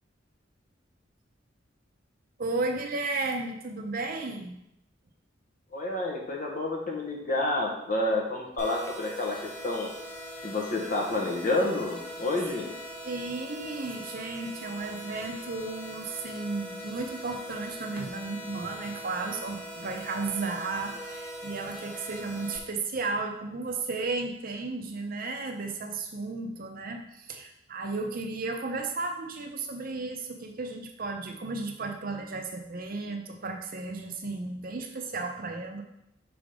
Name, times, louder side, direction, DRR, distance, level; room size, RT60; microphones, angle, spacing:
voice 1, 2.4-4.5 13.0-35.8, right 3 dB, 50° right, 3 dB, 0.7 m, -34 dB
voice 2, 5.7-9.4 9.6-9.9 10.4-12.7, left 2 dB, 45° left, 0 dB, 1.2 m, -29 dB
sound 1, 8.6-22.6, equal, 10° left, 1.8 m, -41 dB
5.9 x 3.8 x 4.9 m, 0.81 s
head